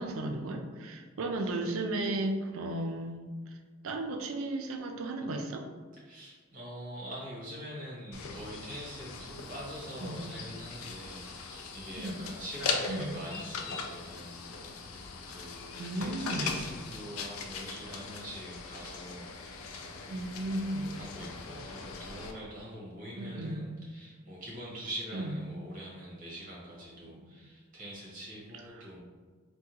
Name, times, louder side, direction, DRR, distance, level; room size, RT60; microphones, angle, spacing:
voice 1, 0.0-3.2 3.5-3.6 3.8-5.7 10.0-10.2 12.0-12.2 12.9-13.2 15.8-16.5 20.1-20.9 23.2-23.6 25.1-25.3 27.0-27.2 28.7-28.9, right 2 dB, 70° right, 4 dB, 0.4 m, -34 dB
voice 2, 6.0-20.3 21.0-29.0, equal, 40° right, -5 dB, 1.1 m, -44 dB
sound 1, 8.1-22.3, left 4 dB, 75° left, 0.4 m, -40 dB
3.5 x 2.2 x 2.8 m, 1.5 s
head